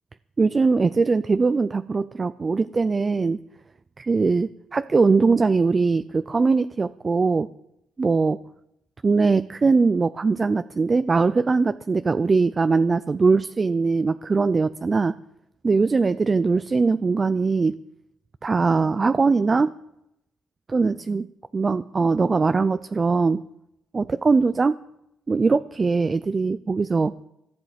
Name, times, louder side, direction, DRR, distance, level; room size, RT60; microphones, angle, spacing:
voice 1, 0.4-3.4 4.0-7.5 8.0-8.4 9.0-15.2 15.6-17.8 18.4-19.7 20.7-21.3 21.5-23.4 23.9-24.8 25.3-27.1, right 4 dB, 30° right, 13 dB, 0.5 m, -21 dB
15.0 x 11.0 x 8.1 m, 0.84 s
cardioid pair, 90°, 0 cm